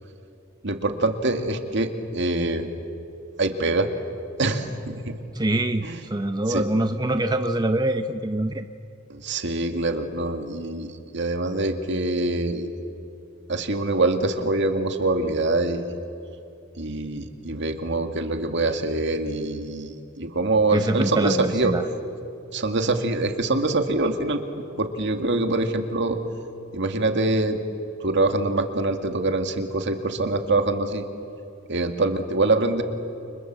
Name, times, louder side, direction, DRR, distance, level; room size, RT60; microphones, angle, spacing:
voice 1, 0.6-2.7 3.4-3.9 4.4-5.2 5.8-6.0 6.5-6.6 9.1-12.7 13.5-15.9 16.8-21.7 22.5-24.4 24.8-26.2 26.7-27.6 28.0-31.1 31.7-32.8, right 2 dB, 60° right, 6 dB, 2.2 m, -24 dB
voice 2, 5.3-8.7 20.7-21.8, right 1 dB, 20° right, 8 dB, 0.7 m, -24 dB
30.0 x 26.5 x 7.6 m, 2.6 s
head